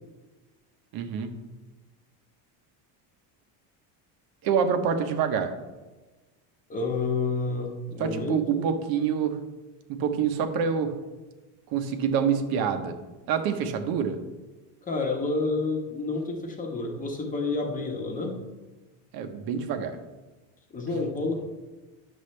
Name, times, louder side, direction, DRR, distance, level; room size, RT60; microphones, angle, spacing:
voice 1, 0.9-1.3 4.4-5.5 8.0-9.4 9.9-11.0 11.7-12.9 13.3-14.2 19.1-20.0, right 7 dB, 50° right, 7 dB, 1.0 m, -26 dB
voice 2, 6.7-8.6 14.8-18.4 20.7-21.4, left 3 dB, 15° left, 2 dB, 1.2 m, -29 dB
10.0 x 7.3 x 3.3 m, 1.2 s
cardioid pair, 155°, 46 cm